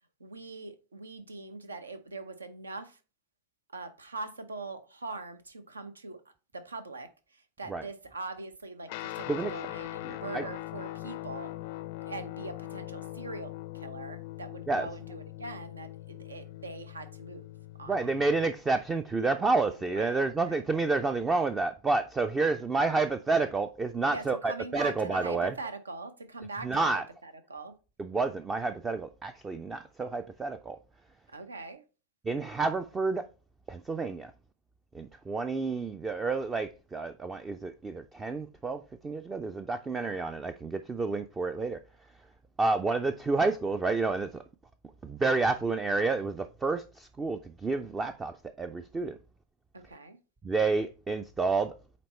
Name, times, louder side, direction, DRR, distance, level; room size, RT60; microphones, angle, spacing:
voice 1, 0.2-3.0 3.7-6.2 6.5-11.5 12.0-17.4 17.8-17.9 19.8-20.1 20.4-20.6 24.1-27.8 31.3-31.8 49.7-50.2, right 3 dB, 75° right, 0.7 m, -42 dB
Guitar, 8.9-18.5, left 17 dB, 50° left, 0.4 m, -41 dB
voice 2, 10.0-10.5 14.7-14.9 17.9-25.5 26.6-27.0 28.0-30.8 32.2-33.3 33.7-34.3 34.9-41.8 42.6-44.4 45.0-49.2 50.4-51.7, right 3 dB, 15° right, 0.4 m, -29 dB
8.5 x 3.1 x 4.2 m
figure-of-eight pair, 90°, 0 cm